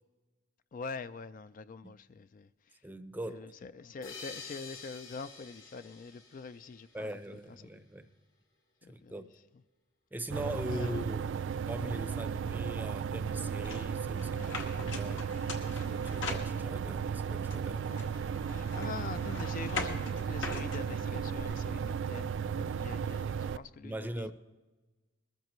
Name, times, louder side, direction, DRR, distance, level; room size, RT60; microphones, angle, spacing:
voice 1, 0.7-2.5 3.3-7.7 8.8-9.3 10.7-11.1 14.4-14.6 18.4-24.3, left 4 dB, 45° left, 0.3 m, -44 dB
voice 2, 2.8-3.5 6.9-8.1 8.9-9.2 10.1-11.3 11.7-15.3 15.7-17.8 23.8-24.3, right 1 dB, 10° right, 0.6 m, -41 dB
sound 1, 4.0-7.3, left 4 dB, 85° left, 3.3 m, -48 dB
sound 2, 10.3-23.6, right 7 dB, 65° right, 0.3 m, -35 dB
sound 3, 13.6-17.0 17.5-21.4, left 3 dB, 70° left, 1.7 m, -42 dB
21.0 x 14.0 x 3.1 m
head